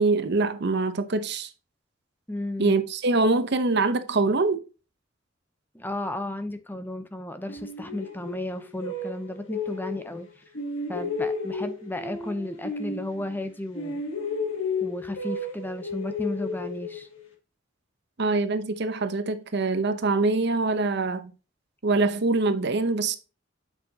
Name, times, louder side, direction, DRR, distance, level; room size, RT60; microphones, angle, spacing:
voice 1, 0.0-1.5 2.6-4.6 18.2-21.3 21.8-23.2, right 3 dB, 60° right, 0.8 m, -24 dB
voice 2, 2.3-2.7 5.7-10.4 10.9-14.0 14.8-17.1, left 1 dB, 10° left, 0.7 m, -34 dB
sound 1, 7.5-10.2 10.5-13.5 13.7-17.3, left 3 dB, 90° left, 2.1 m, -33 dB
8.0 x 5.8 x 2.8 m
head